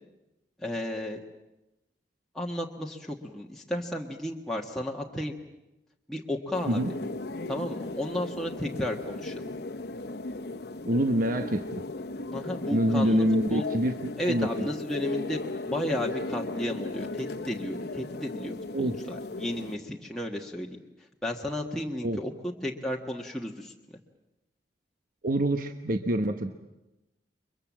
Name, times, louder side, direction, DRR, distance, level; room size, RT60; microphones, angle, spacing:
voice 1, 0.6-1.2 2.3-5.4 6.1-6.9 7.5-9.5 12.3-13.2 13.5-13.6 14.2-15.4 15.6-20.7 21.2-23.7, left 1 dB, 5° left, -2 dB, 1.5 m, -33 dB
sound 1, 6.5-19.8, left 2 dB, 65° left, 1.1 m, -36 dB
voice 2, 10.9-11.8 12.7-13.9 14.2-14.7 18.7-19.0 22.0-22.2 25.2-26.5, equal, 55° right, 7 dB, 1.1 m, -26 dB
29.5 x 24.0 x 7.4 m, 0.97 s
head